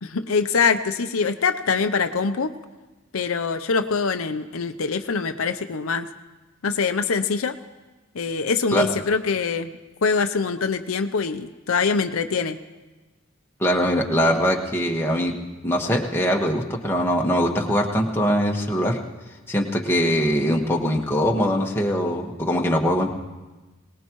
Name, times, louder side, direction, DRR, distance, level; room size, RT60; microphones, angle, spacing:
voice 1, 0.0-2.5 3.1-6.1 6.6-7.6 8.1-9.7 10.0-12.6, left 5 dB, 80° left, 8 dB, 0.7 m, -24 dB
voice 2, 13.6-15.3 15.6-19.0 19.5-23.1, equal, 10° left, -1 dB, 1.4 m, -22 dB
23.0 x 19.0 x 3.1 m, 1.2 s
head